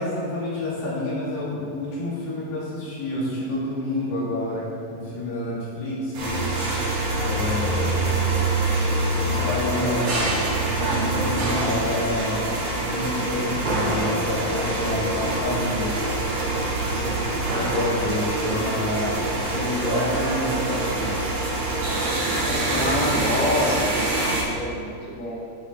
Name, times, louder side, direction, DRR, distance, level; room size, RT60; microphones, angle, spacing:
voice 1, 0.0-6.4 7.2-7.9 9.1-12.4 12.7-15.9 16.8-21.1 22.5-22.9, left 1 dB, 75° left, -8 dB, 4.3 m, -29 dB
sound 1, 6.1-24.4, right 2 dB, 60° right, 3.1 m, -25 dB
voice 2, 22.5-25.4, left 1 dB, 10° left, -6 dB, 0.5 m, -27 dB
10.0 x 8.1 x 4.0 m, 2.6 s
omnidirectional pair, 4.0 m